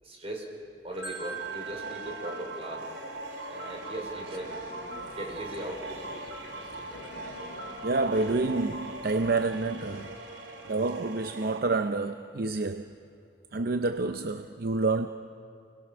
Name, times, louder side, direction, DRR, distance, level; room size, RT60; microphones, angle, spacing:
voice 1, 0.0-0.5 0.8-2.9 3.5-4.6 5.1-6.0, right 1 dB, 35° right, 4.6 m, -38 dB
sound 1, 0.9-11.6, right 2 dB, 75° right, 2.8 m, -41 dB
Marimba xylophone, 1.0-3.1, right 7 dB, 15° right, 7.9 m, -41 dB
sound 2, 3.9-10.1, left 1 dB, 75° left, 2.2 m, -49 dB
voice 2, 7.8-10.2 10.6-13.0 13.5-15.1, right 3 dB, 55° right, 0.6 m, -29 dB
29.0 x 21.0 x 6.2 m
head